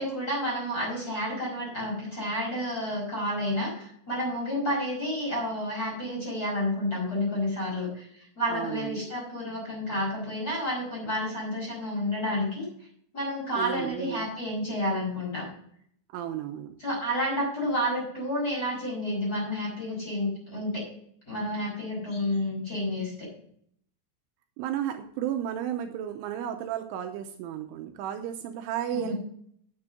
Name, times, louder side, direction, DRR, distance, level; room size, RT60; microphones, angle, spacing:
voice 1, 0.0-12.6 13.1-15.5 16.8-20.8 21.3-23.3 28.9-29.1, left 1 dB, 20° left, -3 dB, 5.1 m, -30 dB
voice 2, 8.5-9.1 13.6-14.3 16.1-16.8 24.6-29.1, right 10 dB, 85° right, 6 dB, 3.1 m, -33 dB
9.8 x 8.3 x 4.9 m, 0.64 s
omnidirectional pair, 5.9 m